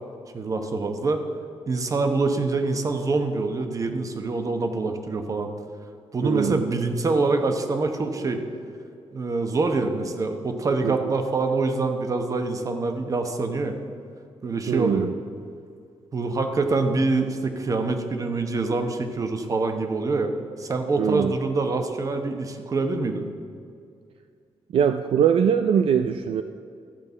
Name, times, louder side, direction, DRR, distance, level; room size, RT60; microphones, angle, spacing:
voice 1, 0.3-1.2 1.7-5.5 6.1-8.4 9.1-13.8 14.4-15.1 16.1-20.3 20.6-23.2, right 3 dB, 30° right, 6 dB, 0.9 m, -25 dB
voice 2, 6.2-6.6 10.8-11.1 14.7-15.1 21.0-21.3 24.7-26.4, right 8 dB, 60° right, 9 dB, 0.4 m, -22 dB
13.5 x 5.4 x 8.1 m, 2.4 s
wide cardioid pair, 165°, 11 cm